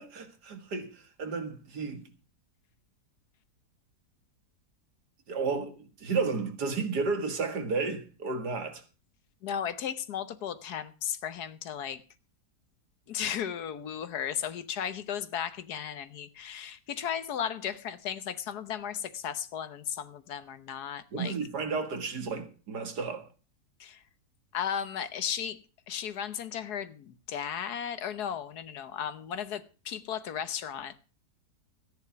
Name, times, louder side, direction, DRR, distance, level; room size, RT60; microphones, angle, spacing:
voice 1, 0.0-2.1 5.3-8.8 21.1-23.3, right 4 dB, 75° right, 2.3 m, -32 dB
voice 2, 9.4-12.0 13.1-21.4 23.8-24.0 24.5-25.6 25.9-31.1, left 8 dB, 75° left, 1.5 m, -35 dB
14.0 x 9.7 x 5.8 m
omnidirectional pair, 1.7 m